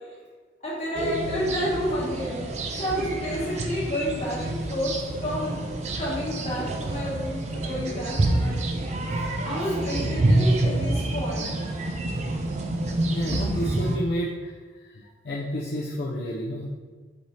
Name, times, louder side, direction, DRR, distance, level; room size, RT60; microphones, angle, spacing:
voice 1, 0.6-2.4 2.8-4.9 5.2-5.6 6.0-9.2 9.4-11.5, equal, 35° left, -6 dB, 1.2 m, -30 dB
sound 1, 0.9-14.0, right 1 dB, 35° right, 0.4 m, -27 dB
voice 2, 13.1-14.6 14.8-16.7, equal, 60° left, -5 dB, 0.4 m, -30 dB
5.1 x 2.7 x 3.1 m, 1.5 s
head